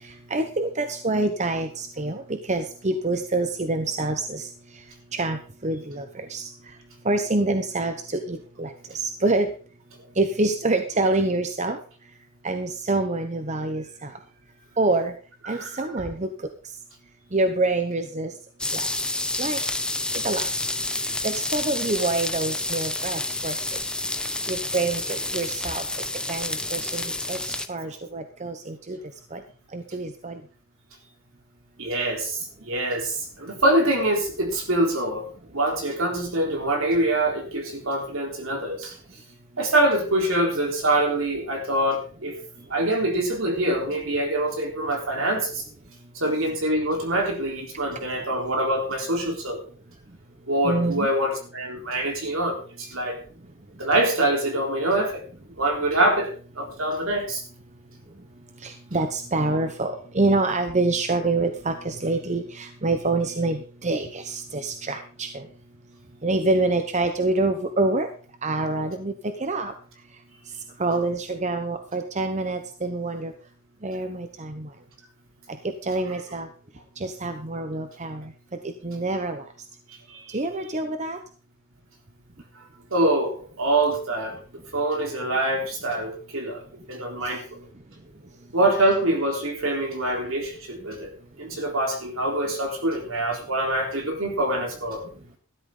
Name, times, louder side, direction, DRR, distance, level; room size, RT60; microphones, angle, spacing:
voice 1, 0.3-4.5 5.1-6.5 7.0-9.5 10.2-11.8 12.4-14.1 14.8-15.1 15.5-16.3 17.3-18.3 18.7-18.8 19.4-19.6 20.2-20.5 21.2-23.5 24.5-25.8 26.3-27.0 27.3-29.0 29.3-29.4 29.7-30.4 50.6-51.1 58.6-65.4 66.2-68.1 68.4-69.7 70.8-73.3 73.8-74.7 75.8-76.5 77.0-78.3 78.8-79.4 80.3-81.2, right 2 dB, 35° right, 7 dB, 0.9 m, -26 dB
voice 2, 15.4-15.8 31.8-39.0 39.6-42.3 42.7-45.6 46.1-49.6 50.5-53.2 53.8-55.2 55.6-57.4 80.1-80.4 82.6-82.7 82.9-84.4 84.7-86.6 86.9-87.6 88.5-91.1 91.4-95.0, right 1 dB, 70° right, 2 dB, 3.9 m, -25 dB
sound 1, 18.6-27.7, left 2 dB, 5° left, 0.6 m, -29 dB
14.0 x 12.5 x 3.9 m, 0.39 s
head